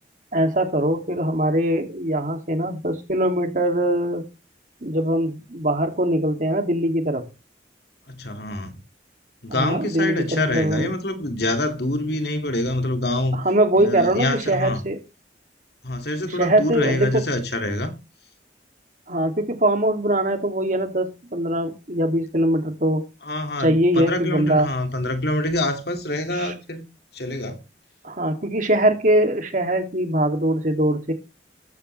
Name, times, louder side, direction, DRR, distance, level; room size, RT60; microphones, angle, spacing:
voice 1, 0.3-4.3 4.8-7.3 9.5-10.9 13.3-15.0 16.3-17.3 19.1-23.1 23.6-24.7 26.3-26.5 28.0-31.1, right 1 dB, 45° right, 2.6 m, -22 dB
voice 2, 8.1-8.7 9.4-13.4 13.8-14.8 15.8-17.9 23.2-26.9 27.1-27.6, left 1 dB, 60° left, 2.3 m, -26 dB
14.5 x 12.0 x 3.3 m
head